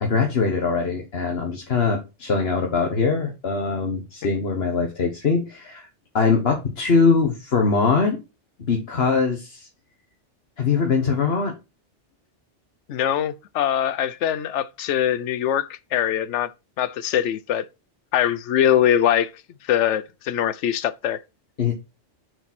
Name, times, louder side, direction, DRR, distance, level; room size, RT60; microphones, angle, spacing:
voice 1, 0.0-5.9 6.1-8.2 8.7-9.7 10.6-11.5 21.6-21.7, left 4 dB, 60° left, 1.4 m, -22 dB
voice 2, 12.9-16.5 16.8-17.7 18.1-19.3 19.6-21.2, left 10 dB, 80° left, 1.0 m, -22 dB
6.6 x 4.5 x 5.9 m
omnidirectional pair, 1.2 m